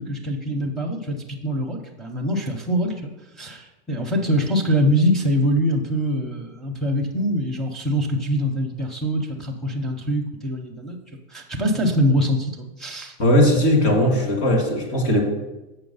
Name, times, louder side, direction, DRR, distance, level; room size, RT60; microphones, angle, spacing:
voice 1, 0.0-2.9 3.4-11.0 11.3-13.2, equal, ahead, -2 dB, 0.6 m, -23 dB
voice 2, 13.2-15.2, left 1 dB, 40° left, 0 dB, 2.2 m, -18 dB
7.6 x 5.9 x 5.4 m, 1.0 s
supercardioid pair, 165°, 34 cm